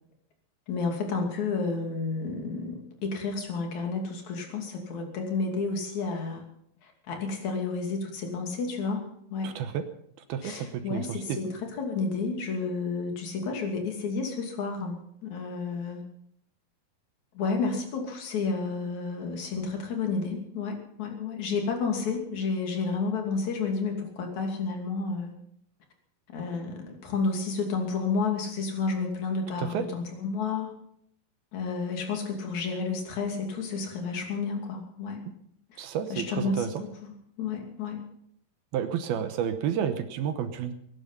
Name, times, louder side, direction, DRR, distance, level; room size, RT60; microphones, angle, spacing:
voice 1, 0.7-6.5 6.8-9.5 10.4-15.0 15.2-16.0 17.3-25.3 26.3-30.7 31.5-35.2 35.7-35.8 36.1-38.0, left 4 dB, 50° left, 2 dB, 3.7 m, -31 dB
voice 2, 9.4-9.8 10.3-11.4 29.6-29.8 35.8-36.7 38.7-40.7, right 8 dB, 75° right, 9 dB, 2.7 m, -30 dB
21.0 x 11.0 x 5.6 m, 0.72 s
omnidirectional pair, 4.8 m